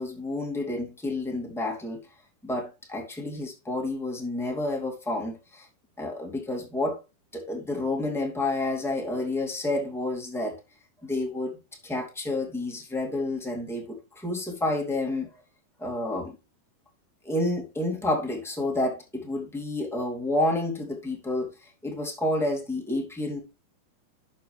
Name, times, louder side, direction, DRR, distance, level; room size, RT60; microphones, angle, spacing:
voice 1, 0.0-2.0 2.4-5.6 6.0-7.0 7.3-10.6 11.0-11.6 11.8-15.3 15.8-16.3 17.2-23.4, left 2 dB, ahead, 1.1 m, -29 dB
11.5 x 6.8 x 3.3 m
omnidirectional pair, 4.8 m